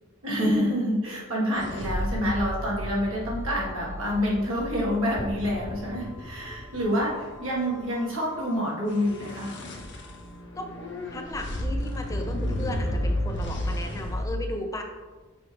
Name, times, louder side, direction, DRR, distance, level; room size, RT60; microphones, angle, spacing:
voice 1, 0.2-9.5, equal, 80° right, -5 dB, 2.0 m, -27 dB
sound 1, 1.5-5.6 8.9-14.3, equal, 55° left, 0.9 m, -32 dB
sound 2, 5.2-8.8, equal, 85° left, 2.0 m, -41 dB
voice 2, 11.1-14.8, left 1 dB, 15° left, 3 dB, 0.5 m, -35 dB
7.0 x 4.5 x 3.4 m, 1.3 s
head